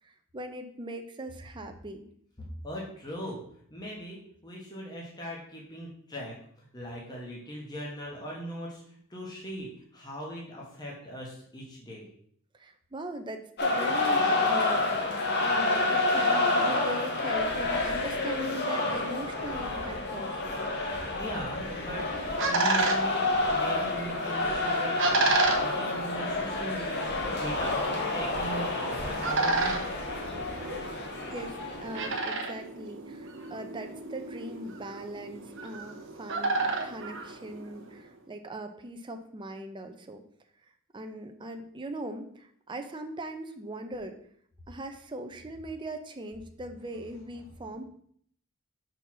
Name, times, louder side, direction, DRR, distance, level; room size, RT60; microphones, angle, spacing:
voice 1, 0.0-2.0 12.6-20.6 30.8-40.2 40.9-44.1 44.7-47.8, right 1 dB, 20° right, 5 dB, 0.6 m, -40 dB
voice 2, 2.6-3.4 3.7-12.1 21.2-29.9 47.5-47.7, equal, 20° left, -3 dB, 1.4 m, -39 dB
sound 1, 13.6-32.1, left 2 dB, 50° left, 1.2 m, -29 dB
sound 2, 21.7-38.0, right 3 dB, 60° right, 1.1 m, -33 dB
5.4 x 4.5 x 6.0 m, 0.63 s
head